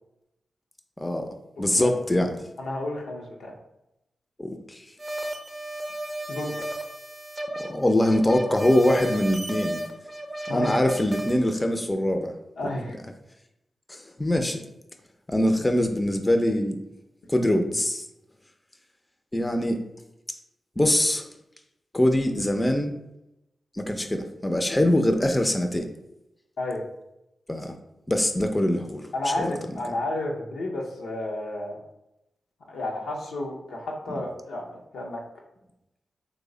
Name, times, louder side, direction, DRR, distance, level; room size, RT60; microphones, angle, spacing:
voice 1, 1.0-2.3 4.4-4.8 7.6-9.8 10.5-12.4 13.9-14.6 15.3-16.8 17.3-18.0 19.3-19.8 20.8-21.3 21.9-22.9 23.8-25.9 27.5-27.7 28.1-29.0 29.4-29.5, left 1 dB, 20° left, 5 dB, 0.4 m, -23 dB
voice 2, 2.6-3.5 6.3-6.7 10.5-10.8 12.6-13.0 26.6-26.8 29.1-31.8 32.7-35.2, left 1 dB, 85° left, -1 dB, 0.6 m, -31 dB
sound 1, 5.0-11.4, right 1 dB, 25° right, 0.6 m, -34 dB
3.1 x 2.1 x 3.7 m, 0.87 s
supercardioid pair, 45°, 0 cm